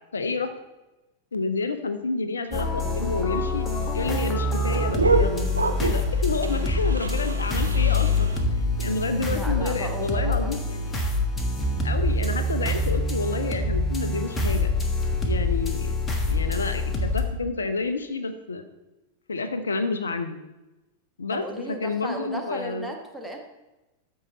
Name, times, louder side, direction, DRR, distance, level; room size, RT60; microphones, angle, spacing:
voice 1, 0.1-0.5 1.3-3.7 3.9-5.5 5.8-10.9 11.8-14.7 15.2-15.9 16.3-18.6 19.3-20.4 21.2-22.9, left 4 dB, 70° left, 10 dB, 0.6 m, -29 dB
sound 1, 2.5-17.2, left 2 dB, 20° left, 1.3 m, -25 dB
sound 2, 2.8-8.4, right 3 dB, 80° right, 0.7 m, -29 dB
voice 2, 9.3-10.6 21.3-23.4, right 1 dB, ahead, 1 dB, 1.3 m, -35 dB
13.5 x 4.7 x 4.1 m, 1.0 s
figure-of-eight pair, 90°, 0 cm